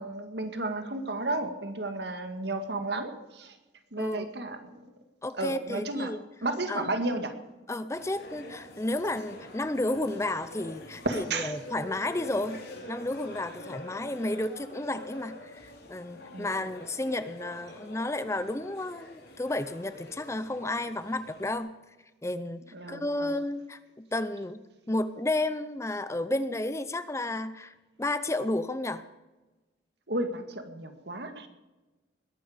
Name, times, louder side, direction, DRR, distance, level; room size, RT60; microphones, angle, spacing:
voice 1, 0.0-3.6 3.9-4.8 5.3-6.1 6.4-7.4 11.1-11.5 16.3-16.6 22.7-23.4 30.1-31.5, right 2 dB, 65° right, 7 dB, 1.9 m, -33 dB
voice 2, 5.2-6.2 6.7-6.9 7.7-12.6 12.9-21.7 22.2-22.6 22.9-29.0, left 1 dB, 15° left, 13 dB, 0.6 m, -32 dB
sound 1, 7.9-21.6, left 1 dB, 55° left, 3.4 m, -46 dB
21.0 x 12.5 x 5.1 m, 1.1 s
head